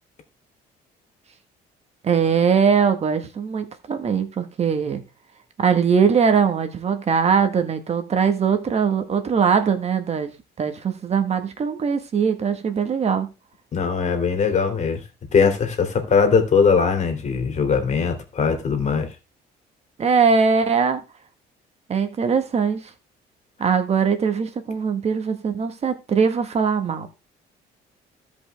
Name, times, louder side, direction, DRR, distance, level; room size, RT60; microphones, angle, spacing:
voice 1, 2.0-5.0 5.6-10.3 10.6-13.3 20.0-21.0 21.9-22.9 23.6-27.1, right 6 dB, 40° right, 1.5 m, -21 dB
voice 2, 13.7-15.0 15.3-19.1, left 5 dB, 45° left, 2.7 m, -20 dB
16.0 x 5.4 x 3.4 m
cardioid pair, 110°, 17 cm